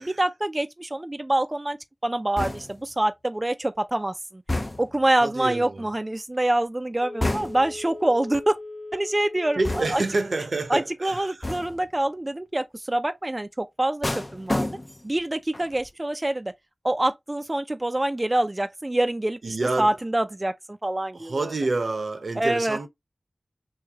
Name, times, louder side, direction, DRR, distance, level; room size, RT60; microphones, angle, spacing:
voice 1, 0.0-1.8 2.0-4.4 4.8-8.6 8.9-10.0 10.7-14.7 15.0-16.5 16.8-21.5 22.4-22.8, right 1 dB, 30° right, 0.4 m, -26 dB
sound 1, 2.4-2.9 4.5-5.1 7.2-7.8 9.6-10.2 11.4-11.9 14.0-15.2 15.5-15.9, left 2 dB, 30° left, 0.5 m, -30 dB
voice 2, 5.2-5.9 9.6-11.5 19.4-20.0 21.1-22.9, right 3 dB, 80° right, 0.8 m, -28 dB
Telephone, 7.0-10.1 10.5-10.6, left 2 dB, 80° left, 1.0 m, -39 dB
3.2 x 2.6 x 3.5 m
wide cardioid pair, 50°, 0 cm